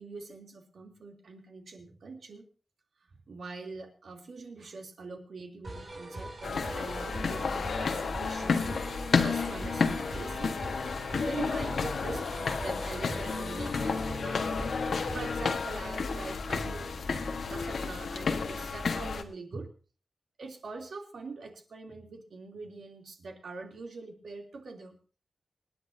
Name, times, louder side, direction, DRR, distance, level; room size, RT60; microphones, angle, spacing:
voice 1, 0.0-2.4 3.3-8.8 9.2-10.5 11.2-12.2 12.6-14.7 15.1-16.9 17.5-19.7 20.4-25.0, right 3 dB, 65° right, 2 dB, 3.2 m, -43 dB
sound 1, 5.6-15.6, right 1 dB, 40° right, 7.8 m, -43 dB
sound 2, 6.4-19.2, left 5 dB, 70° left, 1.4 m, -31 dB
27.0 x 10.0 x 2.8 m, 0.37 s
wide cardioid pair, 160°, 0 cm